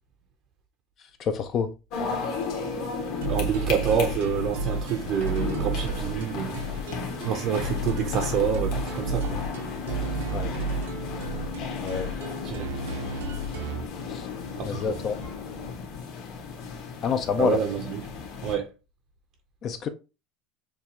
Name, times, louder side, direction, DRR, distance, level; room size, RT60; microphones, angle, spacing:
voice 1, 1.2-1.7 10.3-10.5 11.8-12.1 14.1-14.3 14.6-15.2 17.0-17.6 19.6-19.9, left 6 dB, 35° left, 0.4 m, -27 dB
sound 1, 1.9-18.5, left 5 dB, 50° left, 1.4 m, -35 dB
sound 2, 3.2-13.9, right 2 dB, 90° right, 0.8 m, -32 dB
voice 2, 3.3-6.5 7.2-9.4 12.4-12.7 14.6-15.0 17.4-18.1 18.4-18.7, right 7 dB, 40° right, 0.6 m, -27 dB
sound 3, 5.2-15.7, left 7 dB, 75° left, 1.2 m, -40 dB
6.5 x 2.4 x 2.8 m
supercardioid pair, 155°, 0 cm